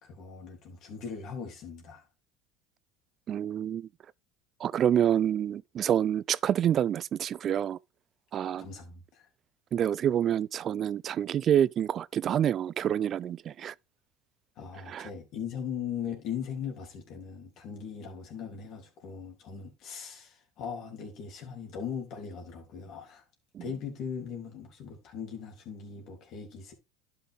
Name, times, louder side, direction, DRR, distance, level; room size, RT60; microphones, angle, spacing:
voice 1, 0.0-2.1 8.6-9.3 14.6-23.2 23.6-26.7, left 7 dB, 55° left, 3.2 m, -39 dB
voice 2, 3.3-3.9 4.6-7.8 8.3-8.7 9.7-13.7 14.9-15.1 23.5-23.6, right 10 dB, 45° right, 0.3 m, -27 dB
11.5 x 5.8 x 3.5 m
hypercardioid pair, 90°, 0 cm